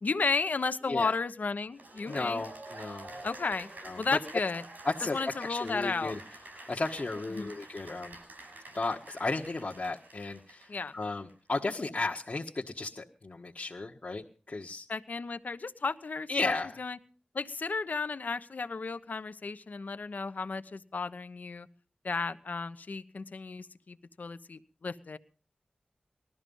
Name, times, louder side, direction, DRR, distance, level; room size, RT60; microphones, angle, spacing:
voice 1, 0.0-2.4 3.2-3.7 4.0-4.6 5.0-6.1 7.3-7.6 10.7-10.9 14.9-17.0 17.3-21.7 22.0-25.2, left 4 dB, 70° left, 12 dB, 1.0 m, -34 dB
Cheering / Applause, 1.7-11.3, right 2 dB, 90° right, 5.8 m, -48 dB
voice 2, 2.1-3.1 3.8-4.0 4.8-6.2 6.7-8.1 8.7-14.9 16.3-16.8, left 3 dB, 50° left, -1 dB, 1.4 m, -34 dB
20.0 x 13.0 x 5.5 m, 0.42 s
wide cardioid pair, 70°, 3 cm